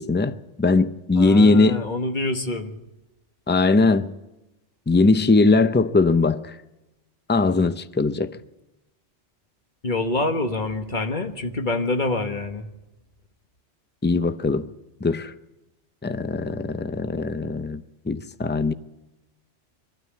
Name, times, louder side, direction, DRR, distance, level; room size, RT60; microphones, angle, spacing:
voice 1, 0.0-1.8 3.5-4.1 4.9-6.5 7.3-8.4 14.0-14.7 15.0-15.3 16.0-18.7, left 3 dB, 20° left, 12 dB, 0.3 m, -20 dB
voice 2, 1.1-2.8 9.8-12.7, left 2 dB, 40° left, 5 dB, 1.6 m, -26 dB
23.0 x 12.5 x 9.5 m, 1.0 s
omnidirectional pair, 1.2 m